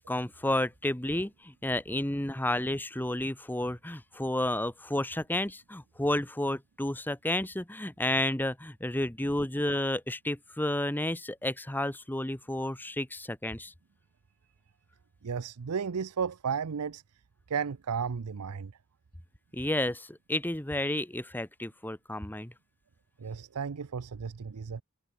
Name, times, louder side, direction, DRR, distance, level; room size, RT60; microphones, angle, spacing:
voice 1, 0.0-13.7 19.5-22.5, left 1 dB, 10° left, 1.2 m, -31 dB
voice 2, 15.2-17.0 17.5-18.7 23.2-24.8, right 6 dB, 80° right, 0.6 m, -33 dB
head